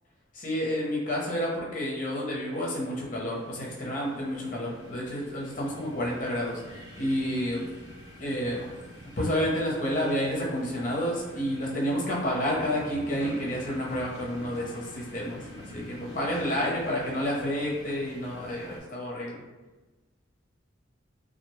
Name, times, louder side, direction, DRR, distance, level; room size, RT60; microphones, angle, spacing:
voice 1, 0.3-7.6 8.2-8.6 9.2-19.4, equal, 45° left, -4 dB, 0.7 m, -30 dB
sound 1, 1.8-18.8, equal, 20° right, 0.9 m, -46 dB
2.5 x 2.1 x 3.0 m, 1.2 s
head